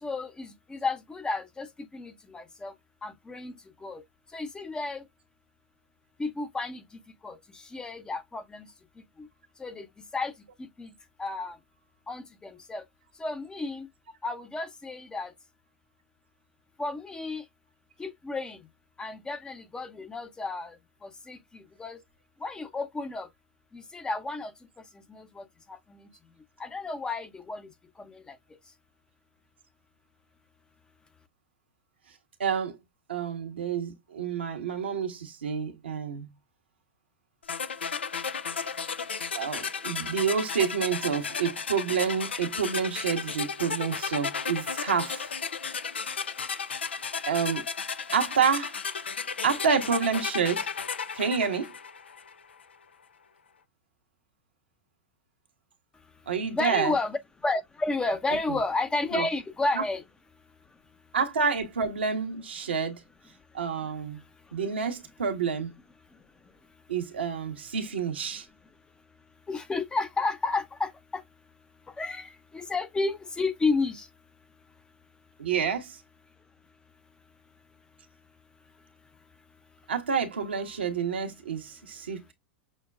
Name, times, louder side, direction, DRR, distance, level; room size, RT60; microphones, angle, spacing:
voice 1, 0.0-1.7 1.9-2.7 3.0-4.0 4.3-5.0 6.2-6.8 7.2-8.7 9.2-9.3 9.6-9.9 10.1-10.3 10.6-10.9 11.2-11.6 12.1-12.8 13.2-13.9 14.2-15.3 16.8-17.4 18.0-18.6 19.0-22.0 22.4-23.3 23.7-24.5 25.1-26.1 26.6-27.7 28.0-28.4 56.5-57.2 57.4-60.0 69.5-71.2 72.0-74.1, left 3 dB, 15° left, 0.7 m, -32 dB
voice 2, 32.4-32.8 33.1-36.3 39.3-45.3 47.3-47.6 48.1-48.7 49.4-50.7 51.1-51.7 56.3-57.0 58.5-58.6 59.1-59.3 59.7-59.8 61.1-63.0 63.5-64.2 64.5-65.7 66.9-68.5 75.4-76.0 79.9-82.3, right 6 dB, 75° right, 1.1 m, -28 dB
sound 1, 37.5-52.4, left 6 dB, 75° left, 0.5 m, -34 dB
6.4 x 2.2 x 2.3 m
figure-of-eight pair, 90°, 6 cm